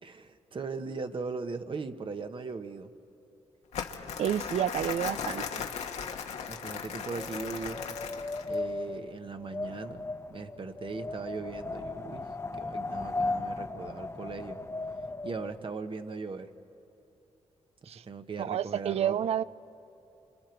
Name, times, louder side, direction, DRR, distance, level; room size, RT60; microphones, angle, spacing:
voice 1, 0.0-2.9 6.5-7.8 8.5-12.2 12.6-14.6 15.2-16.5 17.8-19.2, right 4 dB, 50° right, 1.2 m, -39 dB
Crumpling crinkling, 3.7-8.6, left 6 dB, 85° left, 1.3 m, -37 dB
voice 2, 4.2-5.6 17.9-18.0 18.4-19.4, right 10 dB, 70° right, 0.4 m, -30 dB
Wind, 6.4-15.6, left 2 dB, 25° left, 0.9 m, -37 dB
30.0 x 26.5 x 4.6 m
cardioid pair, 65°, 11 cm